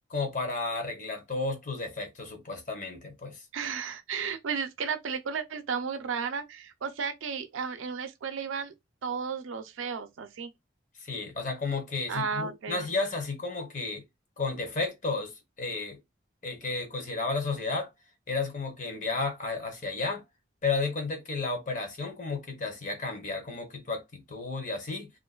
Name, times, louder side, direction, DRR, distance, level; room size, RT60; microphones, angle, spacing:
voice 1, 0.1-3.4 11.0-14.0 14.4-16.0 16.4-17.9 18.3-20.2 20.6-25.1, left 3 dB, 40° left, 0.7 m, -32 dB
voice 2, 3.5-8.7 9.0-10.5 12.1-12.9, right 6 dB, 85° right, 0.5 m, -33 dB
2.5 x 2.2 x 2.3 m
head